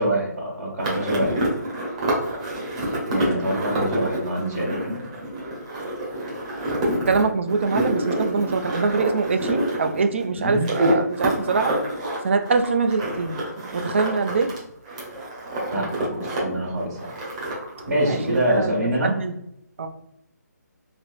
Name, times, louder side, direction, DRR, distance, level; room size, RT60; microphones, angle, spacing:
voice 1, 0.0-1.3 3.1-4.9 10.4-10.6 15.7-17.0 17.9-19.1, right 1 dB, 60° right, -7 dB, 1.4 m, -25 dB
sound 1, 0.8-14.6 14.9-16.4 16.6-18.6, right 1 dB, 20° right, 0.8 m, -27 dB
voice 2, 7.1-11.7 12.2-13.3 13.7-14.5 18.0-18.7 19.0-19.3 19.8-19.9, right 4 dB, 40° right, 7 dB, 0.4 m, -23 dB
3.3 x 2.8 x 2.5 m, 0.76 s
hypercardioid pair, 165°, 10 cm